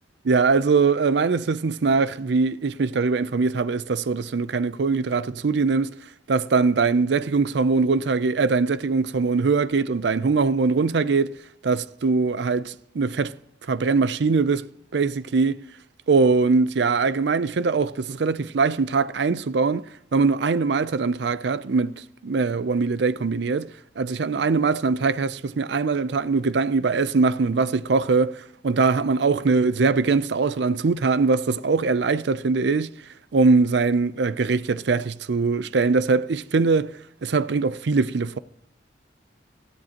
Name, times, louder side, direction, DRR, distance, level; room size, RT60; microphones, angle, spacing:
voice 1, 0.2-6.0 6.3-11.4 11.6-13.3 13.7-15.6 16.1-19.9 20.1-21.9 22.2-32.9 33.3-36.9 37.2-38.4, right 4 dB, 65° right, 0.5 m, -22 dB
18.0 x 13.5 x 2.9 m
head